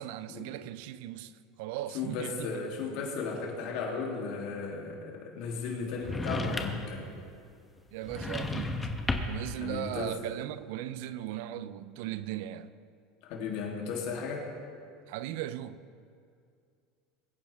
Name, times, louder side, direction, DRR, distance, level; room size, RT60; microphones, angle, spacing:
voice 1, 0.0-2.6 7.9-8.9 9.3-12.7 15.1-15.8, right 13 dB, 75° right, 0.5 m, -38 dB
voice 2, 1.9-7.1 9.6-10.2 13.2-14.5, left 4 dB, 65° left, 3.0 m, -35 dB
sound 1, 6.0-7.0 8.1-9.5, left 2 dB, 15° left, 1.1 m, -33 dB
22.5 x 10.0 x 3.6 m
supercardioid pair, 125°, 0 cm